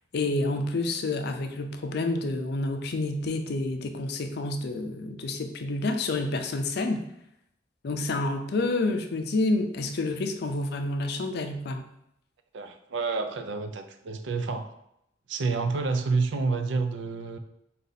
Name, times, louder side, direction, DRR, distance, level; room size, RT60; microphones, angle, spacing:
voice 1, 0.1-7.0 7.8-11.8, left 2 dB, 60° left, 6 dB, 0.4 m, -29 dB
voice 2, 12.5-14.7 15.3-17.4, right 4 dB, 75° right, 7 dB, 0.5 m, -29 dB
3.9 x 2.7 x 4.0 m, 0.79 s
head